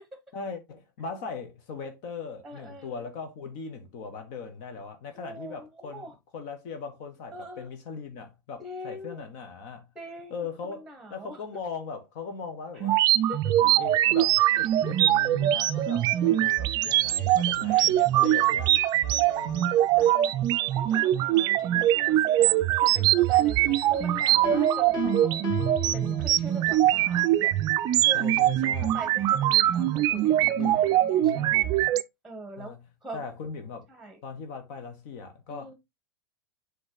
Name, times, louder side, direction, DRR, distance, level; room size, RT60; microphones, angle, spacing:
voice 1, 0.3-9.9 10.3-13.0 13.6-18.7 18.9-19.8 23.6-24.0 28.1-29.0 30.4-31.8 32.6-32.8 33.1-33.9 34.2-35.7, left 5 dB, 50° left, 1.4 m, -39 dB
voice 2, 2.4-3.0 5.1-6.2 7.3-7.7 8.6-9.3 9.9-11.4 12.7-12.9 13.3-13.5 14.5-15.0 15.9-16.4 17.7-17.9 18.2-18.6 19.2-19.5 19.8-20.3 20.7-23.6 23.9-25.4 25.9-27.5 28.0-28.2 28.8-31.7 32.2-32.7 33.0-33.2 33.9-34.2 35.5-35.7, right 1 dB, ahead, 1.5 m, -43 dB
sound 1, 12.8-32.0, right 13 dB, 35° right, 0.5 m, -23 dB
Piano, 24.4-26.7, left 6 dB, 30° left, 3.0 m, -35 dB
7.6 x 3.2 x 4.0 m
hypercardioid pair, 100°, 12 cm